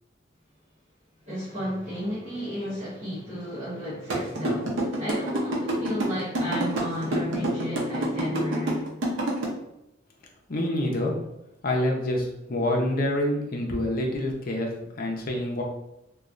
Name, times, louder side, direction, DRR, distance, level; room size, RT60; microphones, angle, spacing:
voice 1, 1.3-8.9, equal, 35° right, -11 dB, 1.0 m, -33 dB
sound 1, 4.1-9.4, right 2 dB, 75° right, 0.7 m, -26 dB
voice 2, 10.5-11.1 11.6-14.7 15.0-15.6, left 1 dB, 50° left, 0 dB, 0.6 m, -26 dB
3.0 x 2.3 x 2.5 m, 0.87 s
head